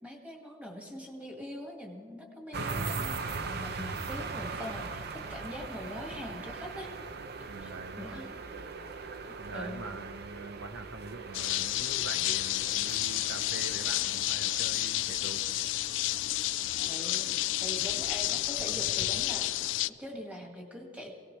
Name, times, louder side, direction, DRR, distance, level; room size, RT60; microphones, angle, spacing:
voice 1, 0.0-6.9 7.6-7.7 8.0-8.3 9.5-9.9 16.8-17.3 17.6-21.1, equal, 10° right, 0 dB, 2.1 m, -43 dB
sound 1, 2.5-19.8, right 4 dB, 60° right, 0.7 m, -41 dB
voice 2, 7.5-8.2 9.4-15.4, right 3 dB, 85° right, 8 dB, 0.9 m, -44 dB
sound 2, 11.3-19.9, left 16 dB, 75° left, 0.3 m, -30 dB
22.5 x 18.0 x 3.3 m, 2.1 s
head